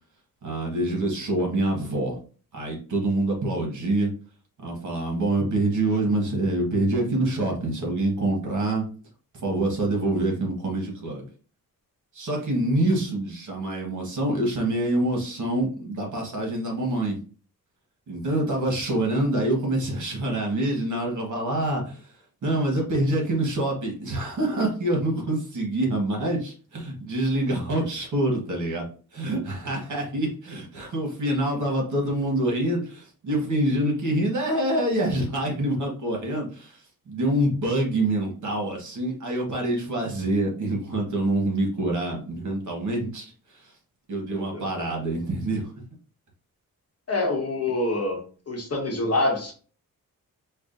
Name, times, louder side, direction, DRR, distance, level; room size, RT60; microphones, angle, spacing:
voice 1, 0.4-2.2 2.5-4.1 4.6-8.9 9.3-11.2 12.1-17.2 18.1-22.2 22.4-28.9 29.1-43.7 44.1-45.7, right 1 dB, 55° right, 0 dB, 1.3 m, -26 dB
voice 2, 44.3-44.6 47.1-48.2 48.5-49.5, left 2 dB, 45° left, 0 dB, 1.1 m, -26 dB
4.7 x 2.3 x 2.6 m, 0.40 s
cardioid pair, 90°, 35 cm